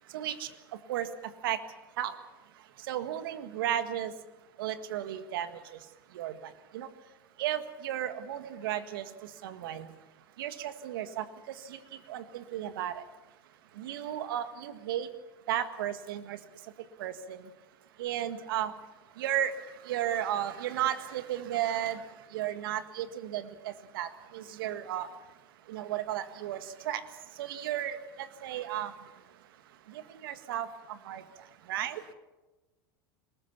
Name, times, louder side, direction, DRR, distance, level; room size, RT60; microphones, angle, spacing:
voice 1, 0.1-0.5 0.9-1.1 1.4-1.6 2.0-2.1 2.9-4.1 4.6-5.8 6.1-6.9 7.4-9.9 10.4-11.2 11.6-11.8 12.1-13.0 13.8-15.1 15.5-16.4 17.0-17.4 18.0-18.7 19.2-19.6 19.8-22.0 22.3-25.1 25.7-27.0 27.4-28.9 29.9-31.2 31.7-32.0, right 11 dB, 70° right, 10 dB, 1.7 m, -34 dB
22.5 x 20.0 x 7.2 m, 1.1 s
hypercardioid pair, 85°, 12 cm